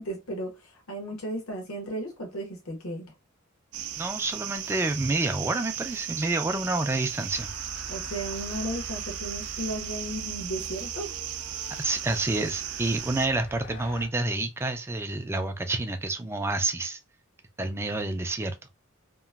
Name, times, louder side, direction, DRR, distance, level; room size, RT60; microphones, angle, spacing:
voice 1, 0.0-3.1 7.9-11.1, right 1 dB, 80° left, 1.0 m, -35 dB
sound 1, 3.7-13.3, right 11 dB, 90° right, 0.4 m, -36 dB
voice 2, 4.0-7.5 11.8-17.0 17.6-18.5, right 2 dB, 10° right, 0.3 m, -28 dB
sound 2, 7.3-14.1, equal, 55° left, 0.6 m, -44 dB
2.9 x 2.5 x 2.3 m
head